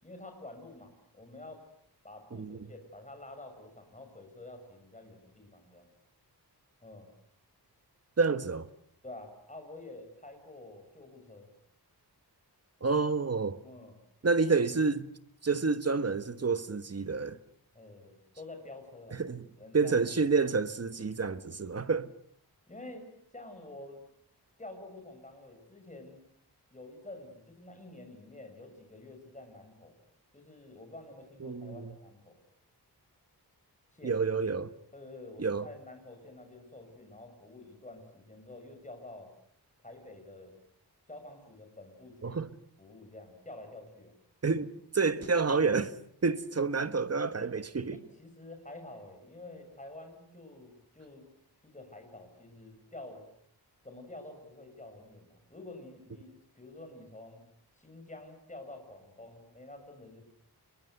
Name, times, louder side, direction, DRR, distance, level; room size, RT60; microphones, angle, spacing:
voice 1, 0.0-1.7 2.0-5.9 6.8-7.1 9.0-11.5 13.6-14.0 17.7-19.2 19.6-20.0 22.7-23.1 23.3-24.0 24.6-26.2 26.7-29.9 30.3-32.4 33.9-34.2 34.9-39.3 39.8-40.6 41.1-42.5 42.8-44.1 44.4-44.6 47.9-51.3 51.6-53.3 53.8-57.4 57.8-60.2, left 2 dB, 20° left, 6.9 m, -49 dB
voice 2, 2.3-2.7 8.2-8.7 12.8-13.6 14.2-15.1 15.4-17.4 19.1-19.4 19.7-22.1 31.4-31.9 34.0-34.7 35.4-35.7 42.2-42.5 44.4-46.0 46.2-48.0, right 4 dB, 40° right, 1.3 m, -29 dB
30.0 x 23.0 x 8.0 m
wide cardioid pair, 120°, 40 cm